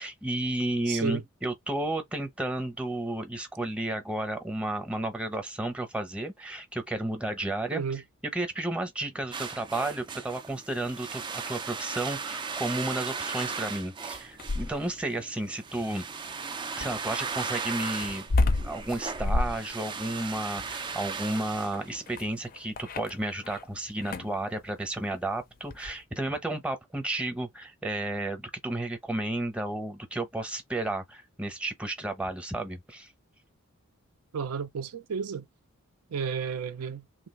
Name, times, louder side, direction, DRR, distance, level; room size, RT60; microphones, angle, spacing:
voice 1, 0.0-7.8 8.3-16.1 16.8-18.3 18.6-33.1, right 1 dB, 5° right, 0.7 m, -32 dB
voice 2, 0.9-1.2 7.7-8.0 34.3-35.5 36.1-37.1, right 6 dB, 85° right, 0.5 m, -32 dB
sound 1, 9.3-22.3, right 5 dB, 20° right, 0.3 m, -37 dB
sound 2, 14.1-15.0 16.8-23.7 24.0-24.4 25.7-26.0, left 2 dB, 40° left, 0.4 m, -31 dB
3.1 x 2.4 x 3.1 m
head